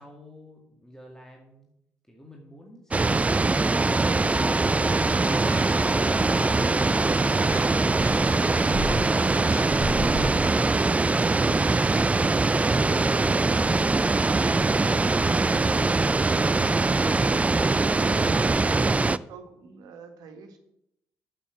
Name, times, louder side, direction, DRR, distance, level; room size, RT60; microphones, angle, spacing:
voice 1, 0.0-1.7 2.1-4.1, left 1 dB, 5° left, 0 dB, 2.1 m, -48 dB
sound 1, 2.9-19.2, right 3 dB, 20° right, 0.4 m, -22 dB
sound 2, 3.7-17.7, left 4 dB, 30° left, 0.7 m, -43 dB
sound 3, 5.3-10.6, left 1 dB, 45° left, 5.3 m, -37 dB
voice 2, 17.8-20.6, right 5 dB, 65° right, 6 dB, 1.7 m, -44 dB
8.4 x 7.3 x 7.4 m, 0.80 s
figure-of-eight pair, 45°, 7 cm